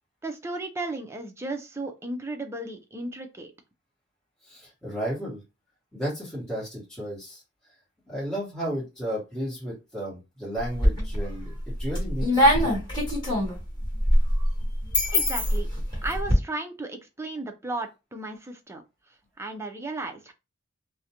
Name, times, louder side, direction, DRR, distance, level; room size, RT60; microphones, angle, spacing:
voice 1, 0.2-3.5 15.1-15.7 16.0-18.8 19.4-20.3, right 2 dB, 15° right, 5 dB, 0.4 m, -34 dB
voice 2, 4.4-5.4 5.9-7.4 8.1-11.5 11.8-12.8, equal, 5° left, -8 dB, 1.1 m, -33 dB
sound 1, 10.6-11.3 11.7-16.3, equal, 25° left, 1.2 m, -23 dB
2.4 x 2.1 x 2.8 m, 0.26 s
head